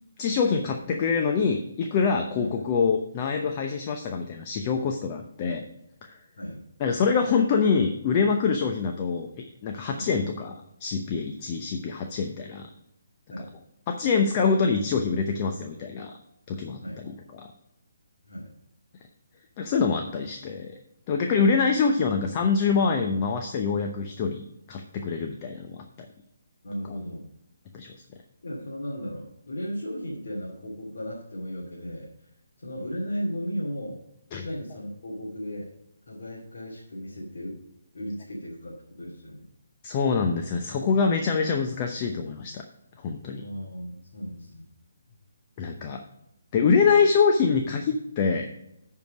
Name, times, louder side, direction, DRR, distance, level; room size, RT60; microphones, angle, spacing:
voice 1, 0.2-5.6 6.0-6.2 6.8-12.7 13.9-16.1 16.5-17.5 19.6-20.8 21.1-24.4 24.7-26.1 27.7-27.9 34.3-34.5 39.8-42.6 43.0-43.4 45.6-46.0 46.5-48.5, left 5 dB, 30° left, 4 dB, 0.8 m, -25 dB
voice 2, 26.6-27.3 28.4-32.1 32.6-34.0 34.4-35.7 36.1-37.6 37.9-39.5 43.4-44.7 46.8-46.9, equal, 65° left, -6 dB, 2.4 m, -35 dB
10.5 x 4.8 x 5.0 m, 0.80 s
figure-of-eight pair, 140°, 0 cm